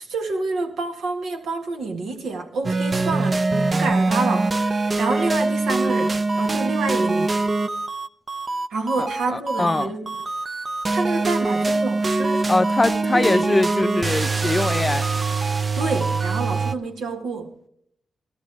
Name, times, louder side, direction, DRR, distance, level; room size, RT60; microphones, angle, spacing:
voice 1, 0.0-7.4 8.7-10.1 10.9-12.5 13.1-13.5 15.7-17.7, right 3 dB, 75° right, 1.7 m, -28 dB
sound 1, 2.6-16.7, right 3 dB, 40° right, 0.7 m, -23 dB
voice 2, 9.0-9.9 12.5-15.0, left 2 dB, 30° left, 0.5 m, -22 dB
13.5 x 12.5 x 4.6 m
supercardioid pair, 45°, 0 cm